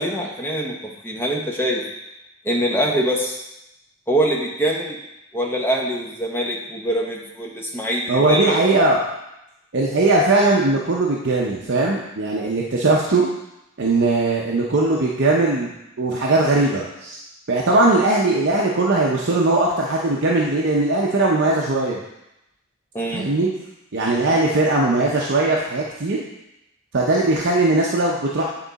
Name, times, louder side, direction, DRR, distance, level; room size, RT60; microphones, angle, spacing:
voice 1, 0.0-1.8 2.4-3.4 4.1-5.0 5.3-8.6 22.9-23.3, right 1 dB, 10° left, -1 dB, 1.0 m, -23 dB
voice 2, 8.1-9.0 9.7-13.3 13.8-15.7 16.0-17.2 17.5-22.0 23.1-23.5 23.9-26.2 26.9-28.4, right 2 dB, 55° right, -3 dB, 0.7 m, -19 dB
8.6 x 3.8 x 4.0 m, 0.89 s
head